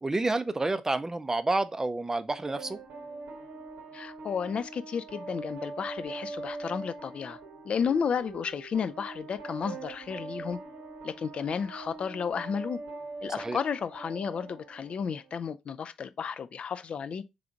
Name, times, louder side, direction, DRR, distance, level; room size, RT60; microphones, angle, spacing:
voice 1, 0.0-2.8 13.4-13.6, right 2 dB, 20° right, 0.5 m, -29 dB
sound 1, 2.3-15.3, right 3 dB, 65° right, 0.9 m, -42 dB
voice 2, 3.9-7.4 7.7-10.6 11.0-12.8 13.2-17.2, left 6 dB, 45° left, 0.4 m, -32 dB
3.8 x 3.3 x 3.6 m
figure-of-eight pair, 40°, 3 cm